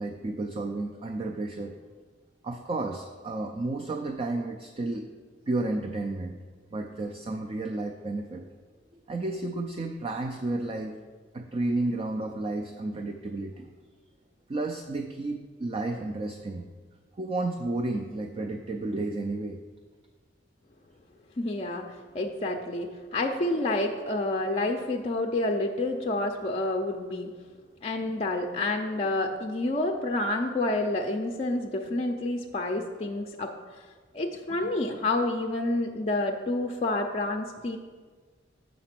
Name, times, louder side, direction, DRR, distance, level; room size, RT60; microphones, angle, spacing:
voice 1, 0.0-1.8 2.4-6.4 6.7-8.5 9.1-11.0 11.3-13.7 14.5-16.7 17.2-19.6 23.5-23.6 28.0-28.4 33.0-33.1 34.6-34.7, right 2 dB, 30° right, 4 dB, 0.4 m, -32 dB
voice 2, 21.4-27.3 27.8-33.5 34.1-37.8, left 2 dB, 30° left, 2 dB, 0.4 m, -29 dB
6.7 x 5.1 x 5.8 m, 1.5 s
head